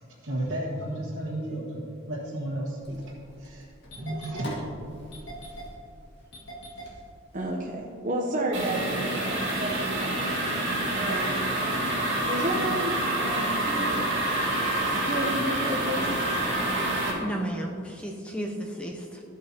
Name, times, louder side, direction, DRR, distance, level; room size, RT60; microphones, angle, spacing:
voice 1, 0.2-3.0 3.4-3.7 3.9-4.5, right 1 dB, 85° right, -7 dB, 1.5 m, -33 dB
Engine starting, 2.8-7.7, right 1 dB, 55° left, 2.0 m, -41 dB
voice 2, 7.3-10.4 10.9-11.7 12.3-14.0 14.8-16.2, right 1 dB, 35° right, -1 dB, 0.8 m, -32 dB
sound 1, 8.5-17.1, right 1 dB, 55° right, 2.6 m, -27 dB
voice 3, 17.2-19.2, equal, 5° left, 0 dB, 0.6 m, -33 dB
14.0 x 8.5 x 2.9 m, 2.5 s
head